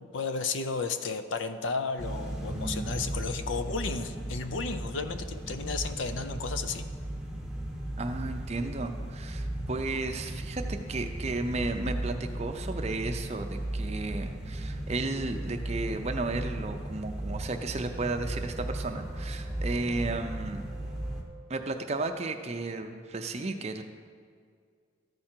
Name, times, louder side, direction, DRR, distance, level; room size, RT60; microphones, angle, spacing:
voice 1, 0.0-6.8, left 4 dB, 70° left, 9 dB, 0.5 m, -33 dB
sound 1, 2.0-21.2, right 1 dB, 5° right, 0.9 m, -36 dB
voice 2, 8.0-20.6 21.5-23.8, right 2 dB, 30° right, 6 dB, 0.5 m, -34 dB
13.5 x 4.9 x 4.4 m, 2.1 s
head